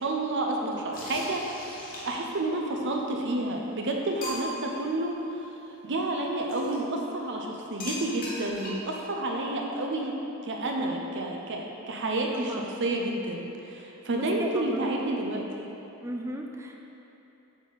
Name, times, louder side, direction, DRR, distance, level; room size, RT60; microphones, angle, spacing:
voice 1, 0.0-5.6 5.8-15.7, right 2 dB, 55° right, 1 dB, 0.7 m, -30 dB
sound 1, 0.9-2.4 3.3-3.4 3.8-3.9 4.2-4.8 6.5-6.8 7.8-9.0, left 1 dB, 40° left, 1.2 m, -38 dB
voice 2, 14.1-14.9 16.0-16.8, right 1 dB, 15° right, 2 dB, 0.4 m, -36 dB
7.9 x 4.3 x 4.0 m, 2.9 s
head